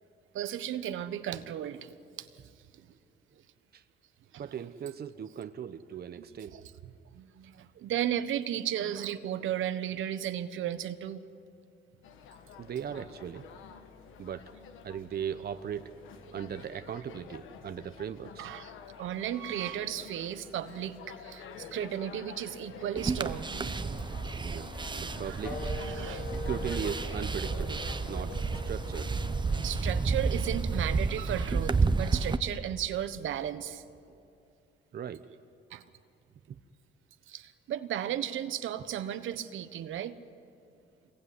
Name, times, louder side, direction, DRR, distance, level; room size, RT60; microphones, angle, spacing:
voice 1, 0.3-1.9 2.2-2.3 4.3-4.7 6.2-6.3 6.5-11.2 18.4-18.7 19.0-24.0 25.1-26.2 29.6-33.8 35.7-35.8 37.3-40.2, right 11 dB, 80° right, 10 dB, 1.3 m, -35 dB
voice 2, 4.4-6.6 12.6-13.5 14.2-14.5 14.8-18.5 24.4-25.6 26.3-29.2 34.1-34.2 34.9-35.3 36.5-36.6, right 8 dB, 50° right, 10 dB, 1.0 m, -38 dB
sound 1, 12.0-30.7, left 6 dB, 85° left, 1.6 m, -49 dB
sound 2, 23.0-32.4, right 4 dB, 20° right, 1.0 m, -31 dB
Wind instrument woodwind instrument, 25.4-30.5, left 4 dB, 50° left, 4.8 m, -44 dB
26.5 x 21.5 x 9.7 m, 2.5 s
cardioid pair, 90°, 20 cm